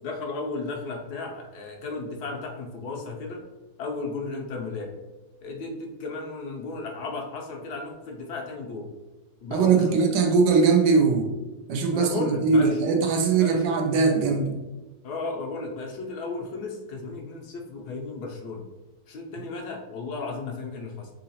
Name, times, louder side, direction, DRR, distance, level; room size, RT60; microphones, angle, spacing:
voice 1, 0.0-3.4 3.8-4.9 5.4-8.9 9.4-10.0 11.9-12.8 13.4-13.6 15.0-18.6 19.1-21.1, left 3 dB, 75° left, 1 dB, 1.1 m, -34 dB
voice 2, 9.5-11.3 11.7-14.6, right 4 dB, 85° right, 4 dB, 1.3 m, -21 dB
3.8 x 2.8 x 2.8 m, 1.1 s
omnidirectional pair, 1.9 m